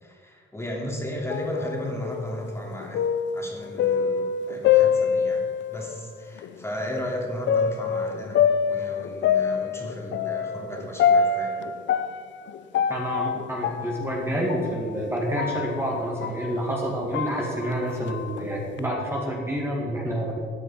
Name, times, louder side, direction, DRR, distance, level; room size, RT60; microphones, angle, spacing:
voice 1, 0.0-3.0 3.3-5.4 5.7-8.4 8.7-11.5, left 1 dB, 15° left, -1 dB, 2.6 m, -34 dB
sound 1, 1.3-5.9 6.4-6.5 7.5-16.5 16.9-18.8, left 7 dB, 70° left, 0.6 m, -25 dB
voice 2, 12.9-20.4, equal, 10° right, -3 dB, 2.2 m, -28 dB
13.5 x 7.9 x 4.9 m, 2.1 s
cardioid pair, 90°, 20 cm